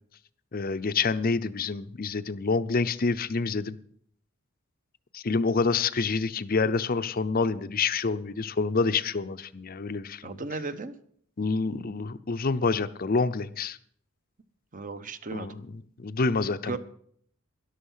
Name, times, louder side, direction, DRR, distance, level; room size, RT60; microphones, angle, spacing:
voice 1, 0.5-3.8 5.1-10.4 11.4-13.8 15.3-16.8, left 4 dB, 45° left, 13 dB, 0.6 m, -27 dB
voice 2, 10.2-11.0 14.7-15.5 16.6-16.8, right 3 dB, 40° right, 11 dB, 0.9 m, -35 dB
13.0 x 11.0 x 5.7 m, 0.63 s
head